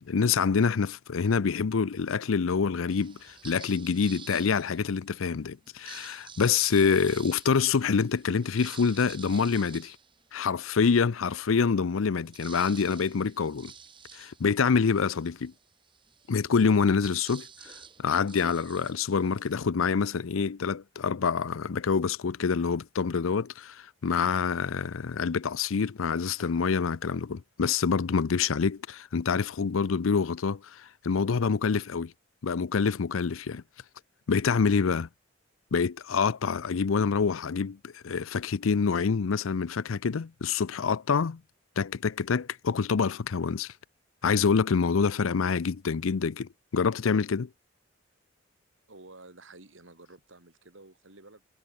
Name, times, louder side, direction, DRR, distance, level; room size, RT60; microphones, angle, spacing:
voice 1, 0.0-10.0 10.3-13.7 14.1-15.5 16.3-17.7 18.0-32.1 32.4-33.6 34.3-35.1 35.7-41.4 41.8-43.7 44.2-47.5, left 5 dB, 90° left, 0.5 m, -26 dB
sound 1, 2.9-5.1 5.6-10.8 11.3-11.4 11.7-19.7, right 6 dB, 25° right, 5.3 m, -50 dB
voice 2, 48.9-51.4, right 2 dB, 75° right, 3.3 m, -51 dB
head